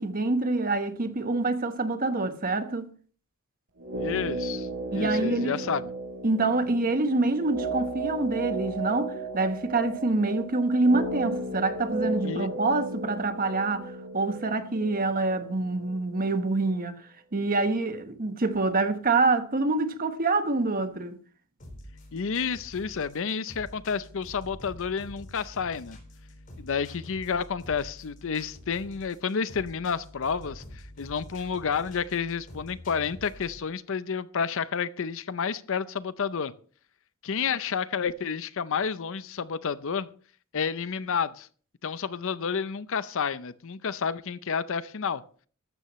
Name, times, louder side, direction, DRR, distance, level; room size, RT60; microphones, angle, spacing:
voice 1, 0.0-2.9 4.9-5.6 6.2-17.0 17.3-21.2, right 3 dB, 40° right, 1.2 m, -26 dB
sound 1, 3.8-16.2, right 2 dB, 65° right, 4.5 m, -35 dB
voice 2, 4.0-5.9 12.2-12.5 22.1-26.0 26.6-36.5 37.2-40.1 40.5-41.5 41.8-45.2, left 6 dB, 65° left, 0.6 m, -30 dB
sound 2, 21.6-33.6, left 1 dB, 40° left, 4.3 m, -47 dB
14.0 x 12.5 x 3.1 m
head